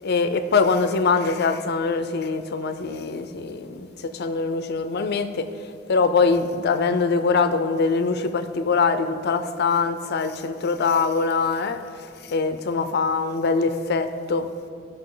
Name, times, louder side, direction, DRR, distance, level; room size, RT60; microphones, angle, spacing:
voice 1, 0.0-5.5 5.9-14.5, left 4 dB, 55° left, 9 dB, 0.5 m, -23 dB
14.5 x 5.5 x 3.8 m, 2.4 s
head